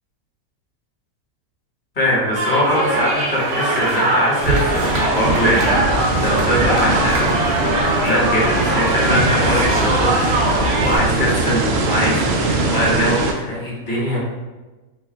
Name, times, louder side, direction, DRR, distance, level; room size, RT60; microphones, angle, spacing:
voice 1, 1.9-7.3 7.6-14.2, equal, 35° left, -7 dB, 1.4 m, -22 dB
sound 1, 2.3-11.0, right 2 dB, 60° right, 1.0 m, -21 dB
sound 2, 4.4-13.3, right 2 dB, 80° right, 0.5 m, -21 dB
4.3 x 2.3 x 3.3 m, 1.2 s
omnidirectional pair, 1.6 m